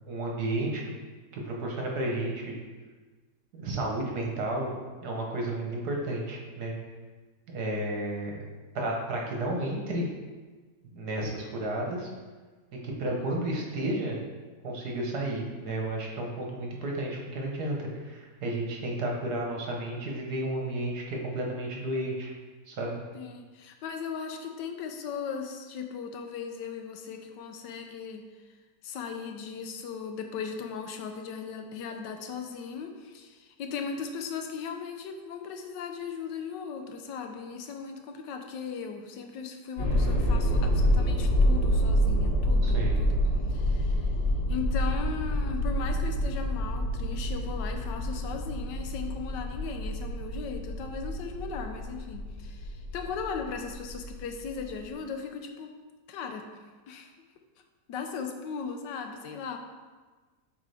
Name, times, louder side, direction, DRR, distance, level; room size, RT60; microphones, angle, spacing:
voice 1, 0.1-0.8 1.3-2.5 3.5-4.7 5.0-6.7 7.5-8.3 8.7-10.1 10.9-12.1 12.7-14.2 14.6-22.3 22.7-23.0 42.6-43.1, right 1 dB, 65° right, -1 dB, 1.5 m, -32 dB
voice 2, 23.1-28.2 28.8-43.2 43.5-44.2 44.5-55.7 56.1-56.5 56.9-57.1 57.9-59.6, left 6 dB, 85° left, 5 dB, 1.3 m, -37 dB
sound 1, 39.8-54.9, equal, 55° left, 1.9 m, -27 dB
8.2 x 3.9 x 3.4 m, 1.3 s
omnidirectional pair, 1.9 m